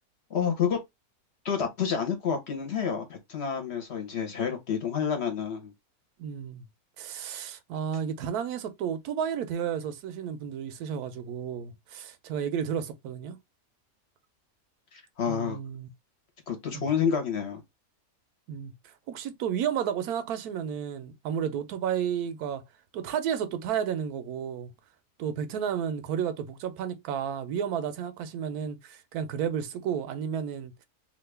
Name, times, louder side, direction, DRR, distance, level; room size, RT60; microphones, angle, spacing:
voice 1, 0.3-0.8 1.4-5.7 14.9-15.6 16.5-17.6, left 7 dB, 50° left, 1.1 m, -29 dB
voice 2, 6.2-6.6 7.0-13.4 15.3-15.9 16.7-16.9 18.5-18.7 19.1-22.6 22.9-24.7 25.2-30.8, right 8 dB, 90° right, 1.1 m, -32 dB
2.9 x 2.5 x 3.2 m
omnidirectional pair, 1.5 m